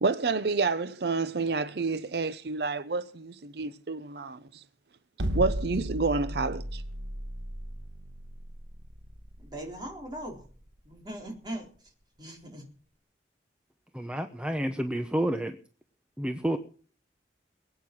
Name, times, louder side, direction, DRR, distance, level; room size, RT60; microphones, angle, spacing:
voice 1, 0.0-4.6 5.3-6.8, right 4 dB, 65° right, 0.6 m, -29 dB
sound 1, 5.2-11.4, equal, 80° right, 1.3 m, -35 dB
voice 2, 9.4-10.4 10.9-11.7 12.2-12.6, right 1 dB, 25° right, 4.1 m, -39 dB
voice 3, 13.9-15.6 16.2-16.6, right 1 dB, 5° right, 0.8 m, -29 dB
21.5 x 9.0 x 6.1 m
head